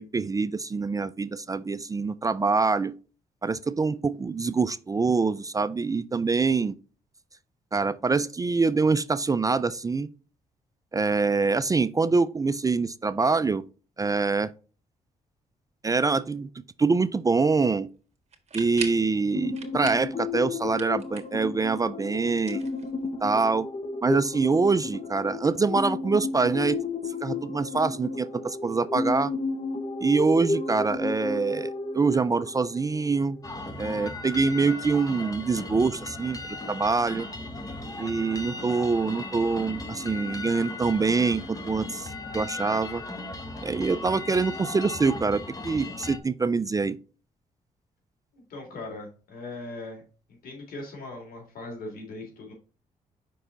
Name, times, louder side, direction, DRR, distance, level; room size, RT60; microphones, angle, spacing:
voice 1, 0.0-2.9 3.4-6.8 7.7-10.1 10.9-13.6 14.0-14.5 15.8-16.5 16.8-17.9 18.5-22.6 23.2-23.7 24.0-26.8 27.2-29.3 30.0-33.4 33.8-37.3 38.0-43.0 43.6-47.0, right 4 dB, 25° right, 0.3 m, -25 dB
sound 1, 18.3-19.1 19.5-20.1 20.4-21.5 22.3-23.3, right 6 dB, 45° right, 1.5 m, -39 dB
sound 2, 19.3-33.8, left 3 dB, 40° left, 1.0 m, -33 dB
sound 3, 33.4-46.2, left 2 dB, 25° left, 1.3 m, -37 dB
voice 2, 48.3-50.0 50.4-52.5, left 2 dB, 75° left, 3.2 m, -39 dB
5.4 x 4.6 x 3.9 m
cardioid pair, 70°, 15 cm